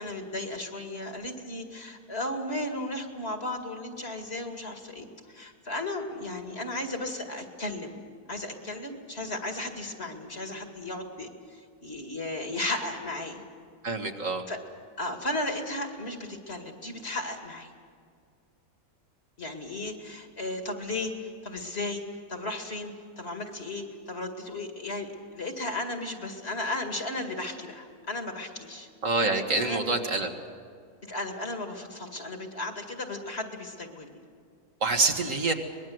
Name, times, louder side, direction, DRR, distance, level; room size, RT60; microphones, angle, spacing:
voice 1, 0.0-8.0 8.3-13.4 14.5-14.6 15.0-17.7 19.4-22.0 22.3-28.9 29.6-29.9 31.0-34.2, left 2 dB, 40° left, 4 dB, 2.4 m, -35 dB
voice 2, 13.8-14.5 29.0-30.3 34.8-35.5, right 3 dB, 55° right, 4 dB, 2.0 m, -26 dB
24.5 x 21.0 x 7.8 m, 2.2 s
omnidirectional pair, 1.6 m